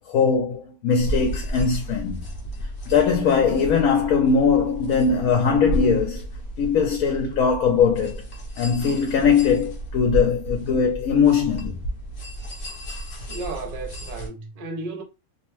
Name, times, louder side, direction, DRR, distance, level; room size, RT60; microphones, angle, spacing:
voice 1, 0.1-2.2 2.9-6.3 6.6-8.2 8.6-11.8, left 6 dB, 75° left, 1.0 m, -20 dB
sound 1, 1.0-14.3, right 1 dB, 55° left, 0.9 m, -33 dB
voice 2, 13.3-15.0, right 3 dB, 65° right, 0.3 m, -33 dB
2.9 x 2.1 x 3.0 m
omnidirectional pair, 1.5 m